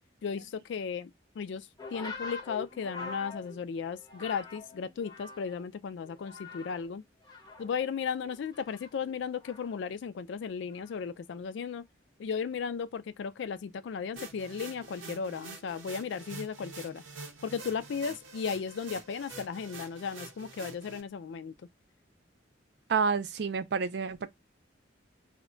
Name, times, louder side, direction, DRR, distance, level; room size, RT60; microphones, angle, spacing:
voice 1, 0.2-7.0 7.6-11.9 12.2-17.0 17.4-21.5, left 6 dB, 70° left, 0.3 m, -35 dB
sound 1, 1.8-5.7 6.0-6.9 7.2-9.9 10.7-11.1, left 3 dB, 20° left, 0.6 m, -45 dB
sound 2, 14.2-21.0, right 3 dB, 90° right, 0.7 m, -46 dB
voice 2, 22.9-24.3, right 5 dB, 60° right, 0.4 m, -29 dB
2.2 x 2.1 x 3.7 m
head